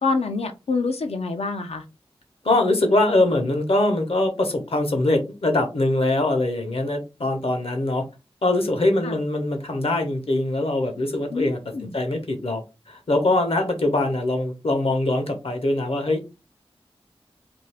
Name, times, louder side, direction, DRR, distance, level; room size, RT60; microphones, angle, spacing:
voice 1, 0.0-1.8 9.0-9.2 11.3-11.9, left 4 dB, 85° left, 0.5 m, -26 dB
voice 2, 2.4-8.0 8.4-11.6 11.9-12.6 12.9-16.2, left 2 dB, 70° left, 0.9 m, -22 dB
2.6 x 2.3 x 3.3 m
wide cardioid pair, 50°, 10 cm